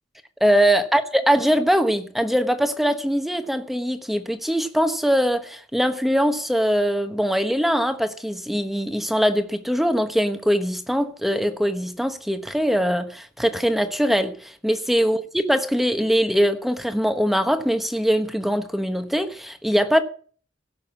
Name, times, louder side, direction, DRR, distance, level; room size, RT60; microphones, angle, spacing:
voice 1, 0.4-20.0, equal, ahead, 1.1 m, -22 dB
17.5 x 6.5 x 7.3 m
head